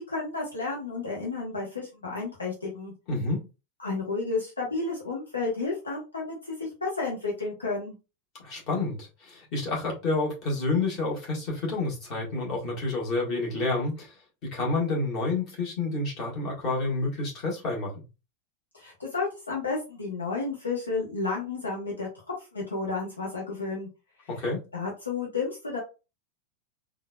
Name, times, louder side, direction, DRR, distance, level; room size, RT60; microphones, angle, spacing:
voice 1, 0.1-2.9 3.8-7.9 18.7-22.1 22.5-23.9 24.7-25.8, left 3 dB, 75° left, 0.9 m, -31 dB
voice 2, 3.1-3.4 8.4-14.2 14.4-17.9 24.3-24.6, left 3 dB, 40° left, 1.6 m, -29 dB
3.7 x 2.4 x 2.3 m
figure-of-eight pair, 90°, 0 cm